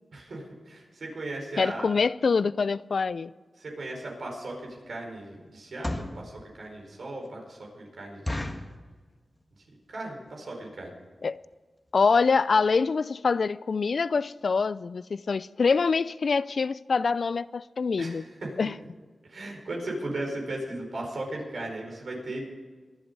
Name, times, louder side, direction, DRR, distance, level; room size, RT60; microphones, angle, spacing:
voice 1, 0.1-1.9 3.6-8.5 9.9-10.9 18.0-18.7 19.3-22.5, right 2 dB, 75° right, 4.6 m, -37 dB
voice 2, 1.6-3.3 11.2-11.4 11.9-18.2 18.6-18.7, left 4 dB, 70° left, 0.4 m, -25 dB
sound 1, 4.0-4.2 4.7-4.9 5.6-6.2 6.8-6.9 7.2-7.3 7.7-7.8 8.3-8.8 9.4-9.6 9.9-10.0 10.2-10.5 11.0-11.1 11.4-11.5 11.9-12.0 12.2-12.3, left 1 dB, 20° left, 1.5 m, -34 dB
23.0 x 7.9 x 5.4 m
cardioid pair, 60°, 0 cm